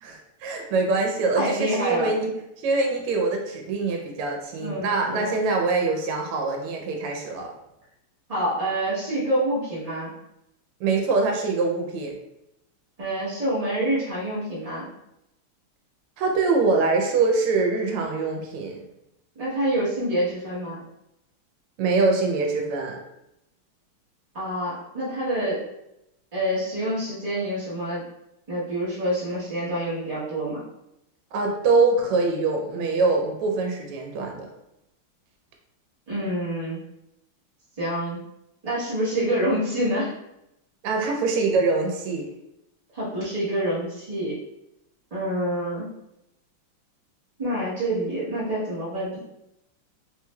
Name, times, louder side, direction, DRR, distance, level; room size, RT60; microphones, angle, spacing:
voice 1, 0.0-2.3 2.6-7.5 10.8-12.2 16.2-18.8 21.8-23.0 31.3-34.5 40.8-42.3, right 3 dB, 85° right, 2 dB, 1.5 m, -24 dB
voice 2, 1.3-2.1 4.6-5.4 8.3-10.1 13.0-14.9 19.4-20.8 24.3-25.6 26.3-28.0 28.5-30.6 36.1-36.8 37.8-38.2 38.6-40.1 42.9-44.3 45.1-45.8 47.4-49.2, right 1 dB, 40° right, -10 dB, 0.5 m, -27 dB
3.7 x 3.1 x 2.2 m, 0.84 s
omnidirectional pair, 2.4 m